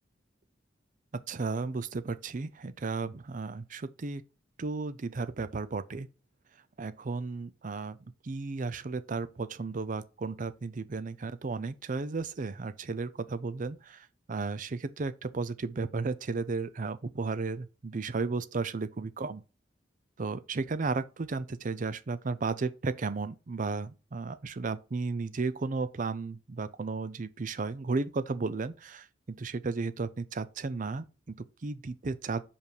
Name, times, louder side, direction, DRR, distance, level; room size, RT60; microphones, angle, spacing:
voice 1, 1.3-4.2 4.6-6.1 6.8-8.0 8.2-19.4 20.2-32.4, right 4 dB, 45° right, 0.5 m, -34 dB
5.2 x 5.2 x 4.8 m
head